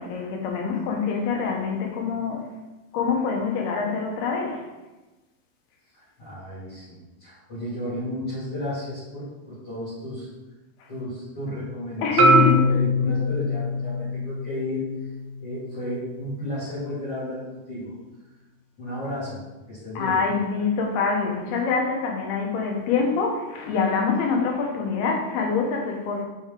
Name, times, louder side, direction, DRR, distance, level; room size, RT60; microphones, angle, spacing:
voice 1, 0.0-2.4 2.9-4.6 10.8-10.9 12.0-12.6 13.0-13.1 20.0-26.2, left 5 dB, 85° left, 1 dB, 3.1 m, -25 dB
voice 2, 5.9-10.3 10.9-14.8 15.4-17.9 18.8-19.4 19.7-20.2, left 1 dB, 40° left, -9 dB, 2.9 m, -33 dB
Marimba xylophone, 12.2-16.4, left 1 dB, 75° right, 1.8 m, -23 dB
7.0 x 6.6 x 3.8 m, 1.1 s
omnidirectional pair, 4.3 m